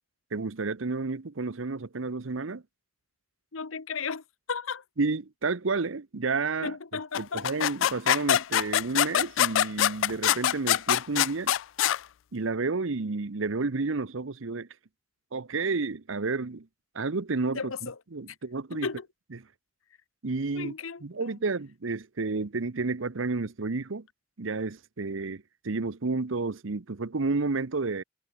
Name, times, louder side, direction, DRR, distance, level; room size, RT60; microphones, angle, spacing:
voice 1, 0.3-2.6 5.0-6.8 7.2-11.5 12.3-14.7 15.3-16.7 16.9-18.9 19.3-19.4 20.2-20.7 21.0-24.1 24.4-28.0, right 3 dB, 75° right, 0.9 m, -31 dB
voice 2, 3.5-4.2 4.5-4.8 6.6-7.5 17.5-17.9 18.7-19.1 20.5-21.3, left 5 dB, 90° left, 1.0 m, -35 dB
sound 1, 7.1-12.0, left 11 dB, 65° left, 0.3 m, -24 dB
head